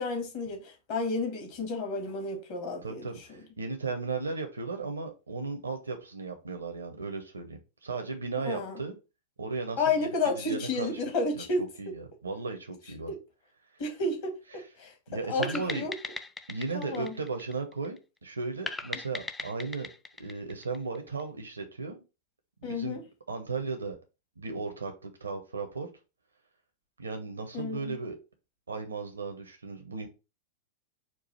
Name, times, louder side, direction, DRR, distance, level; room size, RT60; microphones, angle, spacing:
voice 1, 0.0-3.4 8.4-8.8 9.8-11.6 13.1-13.2 13.8-14.9 15.3-15.9 16.7-17.2 22.6-23.0 27.5-28.0, left 3 dB, 45° left, 1.5 m, -31 dB
voice 2, 2.8-9.0 9.4-10.0 10.2-11.0 11.6-13.1 14.5-14.6 15.1-15.9 16.5-19.9 20.2-22.0 22.6-23.0 23.3-24.0 24.4-25.9 27.0-28.2 28.7-30.1, right 4 dB, 75° right, 0.7 m, -36 dB
sound 1, 15.4-18.0 18.7-21.2, left 3 dB, 10° left, 0.4 m, -39 dB
4.6 x 2.4 x 4.0 m
figure-of-eight pair, 95°, 0 cm